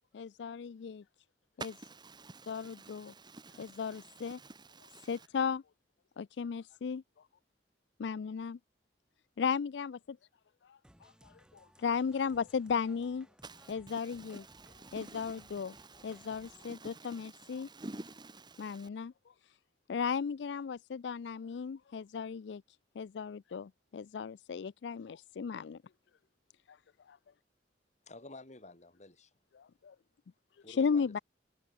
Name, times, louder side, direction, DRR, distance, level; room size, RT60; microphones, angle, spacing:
voice 1, 0.1-1.0 2.5-3.1 3.6-4.4 5.1-5.6 6.2-7.0 8.0-8.6 9.4-9.9 11.8-13.3 13.7-14.4 14.9-15.7 16.0-17.7 18.6-19.1 19.9-22.6 23.0-25.8 27.1-27.2 29.6-29.9 30.8-31.2, left 6 dB, 75° left, 0.4 m, -35 dB
voice 2, 1.6-5.3 13.4-18.9, right 2 dB, 25° right, 1.5 m, -50 dB
sound 1, 10.8-16.7, equal, 5° right, 7.6 m, -62 dB
voice 3, 28.1-29.3 30.6-31.2, left 2 dB, 40° left, 3.3 m, -51 dB
head